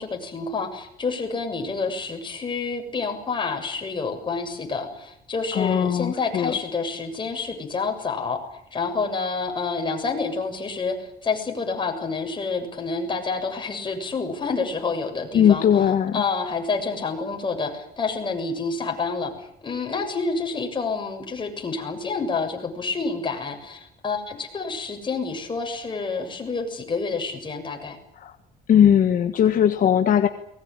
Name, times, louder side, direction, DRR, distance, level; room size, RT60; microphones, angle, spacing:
voice 1, 0.0-8.4 8.7-15.6 16.1-28.0, left 4 dB, 30° left, 3 dB, 7.1 m, -28 dB
voice 2, 5.5-6.5 15.3-16.2 28.2-28.3 28.7-30.3, left 9 dB, 55° left, 8 dB, 1.5 m, -19 dB
23.5 x 21.0 x 9.0 m, 0.73 s
cardioid pair, 110°, 17 cm